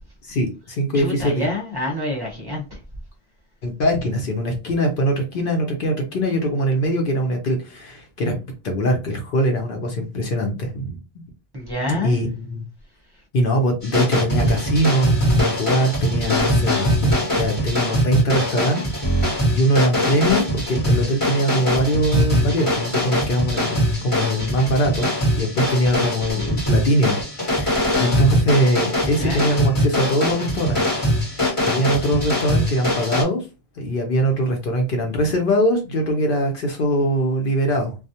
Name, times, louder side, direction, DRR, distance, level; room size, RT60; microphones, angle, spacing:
voice 1, 0.2-1.4 3.6-8.4 8.6-11.2 11.9-12.6 13.3-17.1 17.4-18.8 19.1-30.8 31.3-33.5 33.8-38.0, equal, 60° left, 0.7 m, -22 dB
voice 2, 0.9-2.8 11.5-12.2 29.2-29.5, left 1 dB, 25° right, 0.7 m, -27 dB
sound 1, 13.8-33.2, equal, 30° left, 1.1 m, -22 dB
2.3 x 2.0 x 2.7 m
omnidirectional pair, 1.1 m